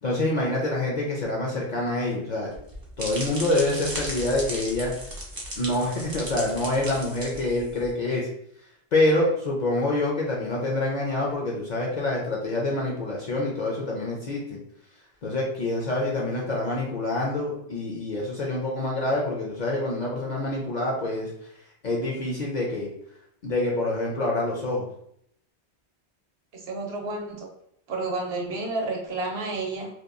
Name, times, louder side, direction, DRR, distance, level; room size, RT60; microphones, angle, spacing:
voice 1, 0.0-2.5 3.0-4.9 5.6-8.3 8.9-14.6 15.2-21.3 21.8-22.9 23.4-24.9, left 2 dB, 55° left, -2 dB, 0.5 m, -26 dB
sound 1, 2.5-7.9, right 1 dB, 30° right, 0.4 m, -36 dB
voice 2, 26.5-27.5 27.9-29.9, right 2 dB, 70° right, 0 dB, 0.9 m, -30 dB
2.8 x 2.2 x 2.4 m, 0.72 s
omnidirectional pair, 1.1 m